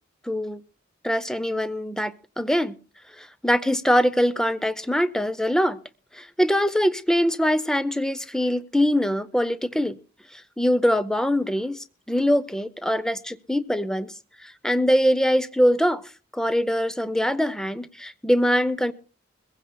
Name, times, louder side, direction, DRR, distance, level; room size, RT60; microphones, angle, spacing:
voice 1, 0.2-0.6 1.0-2.8 3.2-5.8 6.1-10.0 10.3-14.1 14.4-18.9, equal, 5° left, 0.6 m, -23 dB
22.5 x 16.0 x 2.3 m
head